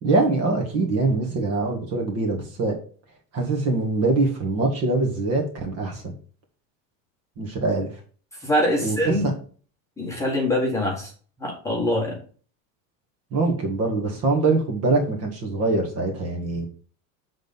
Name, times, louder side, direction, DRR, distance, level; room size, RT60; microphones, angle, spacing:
voice 1, 0.0-2.8 3.3-6.1 7.4-7.9 8.8-9.3 13.3-16.7, right 3 dB, 35° right, 2 dB, 1.8 m, -23 dB
voice 2, 8.4-9.3 10.0-11.1 11.4-12.2, left 1 dB, 5° left, -3 dB, 1.6 m, -24 dB
7.7 x 3.9 x 5.2 m, 0.42 s
supercardioid pair, 160°, 42 cm